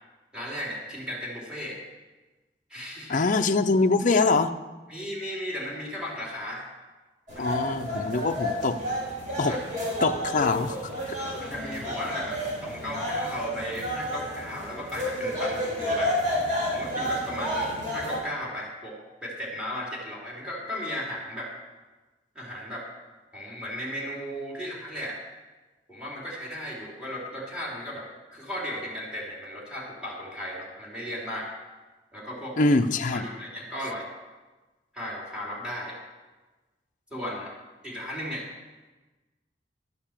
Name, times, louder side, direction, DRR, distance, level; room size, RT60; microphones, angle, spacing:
voice 1, 0.3-1.8 2.7-3.2 4.9-6.6 7.4-7.6 9.4-9.6 11.4-16.2 16.7-21.5 22.4-22.9 23.3-25.2 25.9-31.5 32.1-32.6 33.1-34.1 34.9-36.0 37.1-37.5 37.8-38.5, equal, 5° right, -3 dB, 3.5 m, -35 dB
voice 2, 3.1-4.5 7.4-8.8 9.4-9.6 10.0-10.8 11.1-11.2 32.6-33.3, left 3 dB, 45° left, 7 dB, 0.6 m, -23 dB
sound 1, 7.3-18.2, equal, 45° right, 5.1 m, -30 dB
13.0 x 7.0 x 7.4 m, 1.2 s
head